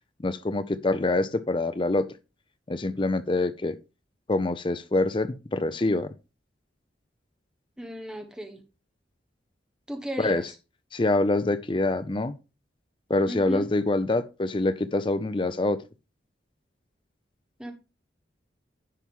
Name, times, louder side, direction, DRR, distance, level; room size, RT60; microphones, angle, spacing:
voice 1, 0.2-2.1 2.7-3.8 4.3-6.1 10.2-10.5 10.9-12.3 13.1-15.8, left 2 dB, 25° left, 0.5 m, -25 dB
voice 2, 7.8-8.6 9.9-10.5 13.3-13.7 17.6-17.7, equal, 5° right, 1.1 m, -35 dB
10.0 x 6.0 x 3.6 m
head